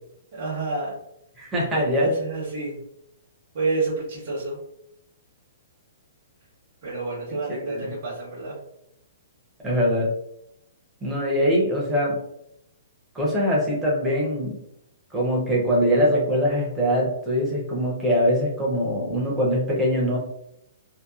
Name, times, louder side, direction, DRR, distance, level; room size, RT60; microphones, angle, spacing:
voice 1, 0.3-0.9 1.7-2.8 3.5-4.6 6.8-8.6, right 3 dB, 35° right, -9 dB, 0.8 m, -29 dB
voice 2, 1.4-2.1 7.5-7.9 9.6-10.1 11.0-12.2 13.1-14.6 15.1-20.2, equal, 5° right, -5 dB, 0.6 m, -23 dB
2.7 x 2.1 x 2.3 m, 0.77 s
hypercardioid pair, 180°, 0 cm